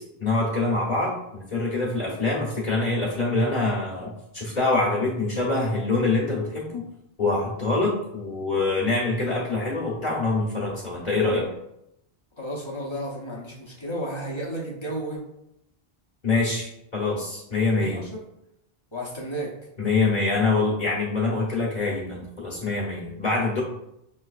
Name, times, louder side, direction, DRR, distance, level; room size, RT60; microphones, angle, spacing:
voice 1, 0.2-6.8 7.2-11.5 16.2-18.0 19.8-23.6, left 3 dB, 45° left, -4 dB, 1.1 m, -25 dB
voice 2, 12.4-15.2 17.8-18.1 18.9-19.5, right 1 dB, 30° left, -4 dB, 0.9 m, -32 dB
5.7 x 3.2 x 2.4 m, 0.81 s
omnidirectional pair, 1.0 m